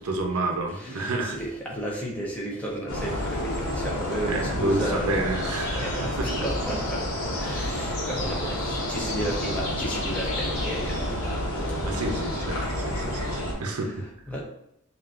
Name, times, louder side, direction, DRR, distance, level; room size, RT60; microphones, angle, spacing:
voice 1, 0.0-1.4 4.2-6.4 11.8-13.9, right 2 dB, 80° right, 2 dB, 0.6 m, -29 dB
voice 2, 0.7-5.2 5.7-7.1 7.4-12.3 12.5-13.0 13.5-14.4, right 1 dB, 5° left, -3 dB, 0.7 m, -34 dB
sound 1, 2.9-13.5, left 1 dB, 70° left, 1.0 m, -29 dB
5.5 x 2.5 x 2.5 m, 0.77 s
head